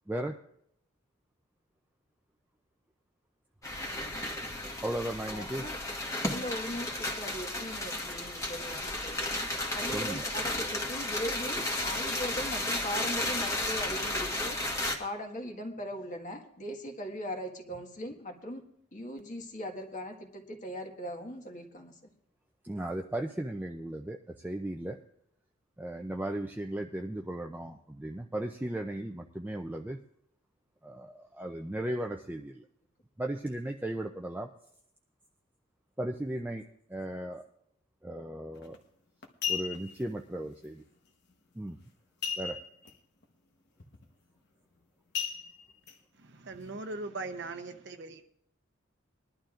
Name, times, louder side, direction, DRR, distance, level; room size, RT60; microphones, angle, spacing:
voice 1, 0.1-0.4 4.8-5.7 9.9-10.3 22.6-25.0 25.8-30.0 30.8-32.7 33.2-34.5 36.0-36.6 36.9-37.4 38.0-38.8 39.5-40.8 41.5-41.8 42.4-42.6, right 1 dB, 10° right, 2 dB, 0.4 m, -36 dB
sound 1, 3.6-15.0, left 1 dB, 15° left, 1.4 m, -33 dB
voice 2, 4.3-4.8 5.3-5.8 6.3-9.3 9.7-14.6 15.0-18.6 18.9-22.1, equal, 40° left, 3 dB, 1.6 m, -39 dB
sound 2, 38.6-38.8 39.2-40.0 42.2-42.9 43.2-43.3 43.8-44.1 45.1-45.9 46.5-46.6, left 7 dB, 55° left, 1.2 m, -35 dB
voice 3, 46.2-48.2, right 3 dB, 60° right, 6 dB, 0.8 m, -40 dB
21.5 x 11.5 x 2.5 m, 0.70 s
head